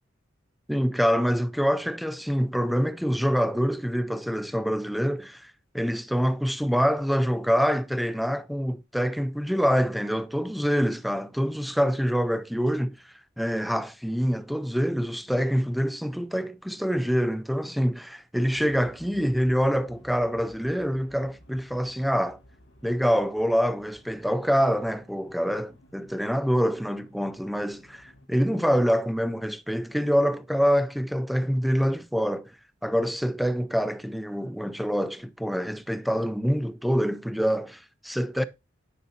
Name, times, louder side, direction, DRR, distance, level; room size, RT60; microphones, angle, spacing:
voice 1, 0.7-22.4 22.8-32.5 32.8-38.4, equal, ahead, 0.3 m, -26 dB
sound 1, 18.5-28.3, equal, 65° left, 1.9 m, -54 dB
10.0 x 7.0 x 2.7 m
head